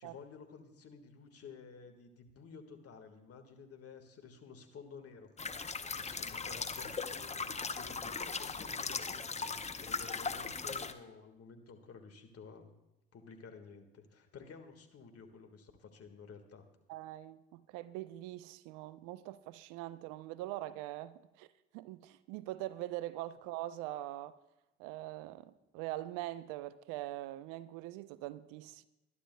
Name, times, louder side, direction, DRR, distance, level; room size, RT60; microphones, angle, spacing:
voice 1, 0.0-5.3 6.0-12.7 13.1-16.6, left 5 dB, 50° left, 1.8 m, -53 dB
sound 1, 5.4-10.9, left 4 dB, 20° left, 0.8 m, -39 dB
voice 2, 16.9-21.5 21.7-24.4 24.8-28.8, right 15 dB, 75° right, 0.5 m, -43 dB
20.0 x 11.5 x 2.3 m
hypercardioid pair, 55°, 32 cm